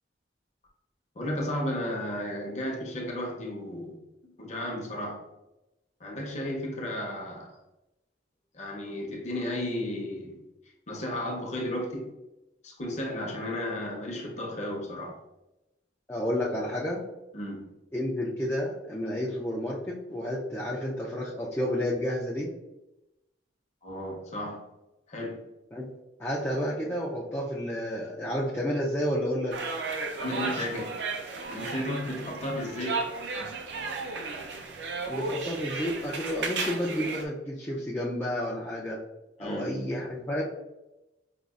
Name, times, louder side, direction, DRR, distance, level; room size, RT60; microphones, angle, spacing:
voice 1, 1.2-3.9 4.2-5.2 6.0-7.5 8.5-10.4 10.9-12.1 12.6-15.2 17.3-17.7 23.8-24.6 25.1-25.4 30.2-31.0 31.5-33.5 33.8-34.0 39.4-39.7, left 1 dB, 40° left, -1 dB, 0.8 m, -34 dB
voice 2, 16.1-17.1 17.9-22.5 25.7-25.9 26.2-29.6 35.1-39.0 39.4-40.4, equal, 15° left, -5 dB, 0.4 m, -31 dB
sound 1, 29.5-37.2, right 4 dB, 85° right, 0.5 m, -34 dB
5.1 x 2.4 x 2.4 m, 0.95 s
head